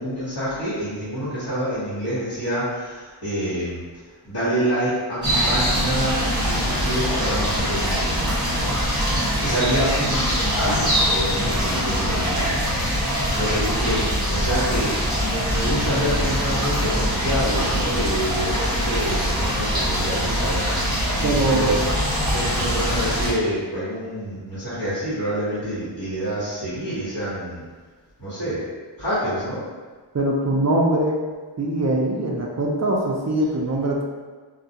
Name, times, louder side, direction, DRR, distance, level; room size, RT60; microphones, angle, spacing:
voice 1, 0.0-3.8 4.2-8.1 9.4-21.8 22.3-27.6 28.2-28.6 29.0-29.6, equal, 50° left, -13 dB, 1.2 m, -27 dB
sound 1, 5.2-23.3, equal, 10° right, 1.3 m, -23 dB
voice 2, 21.2-21.9 30.1-31.2 31.6-34.0, right 1 dB, 40° right, -1 dB, 0.4 m, -22 dB
2.3 x 2.1 x 2.7 m, 1.4 s
wide cardioid pair, 45°, 46 cm